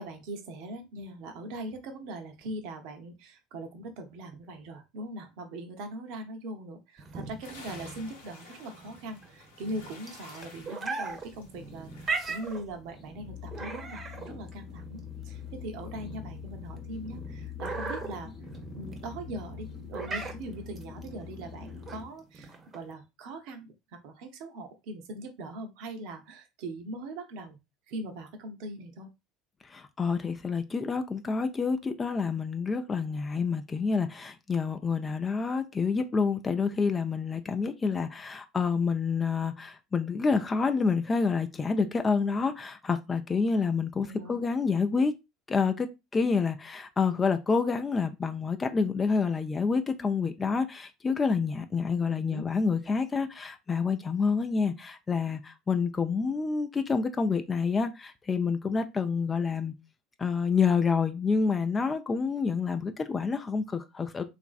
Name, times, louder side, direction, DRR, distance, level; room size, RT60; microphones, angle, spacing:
voice 1, 0.0-18.3 18.7-27.6 27.9-29.1 44.0-44.4 52.1-52.5, right 1 dB, 65° right, 0.7 m, -41 dB
sound 1, 7.0-22.9, right 4 dB, 30° right, 0.8 m, -39 dB
sound 2, 7.4-12.6, left 4 dB, 85° left, 0.8 m, -51 dB
sound 3, 11.1-22.1, left 8 dB, 40° left, 0.9 m, -44 dB
voice 2, 29.6-45.2 45.5-45.9 46.1-59.7 60.2-64.2, left 5 dB, 25° left, 0.4 m, -28 dB
3.0 x 2.5 x 2.4 m
hypercardioid pair, 80°, 0 cm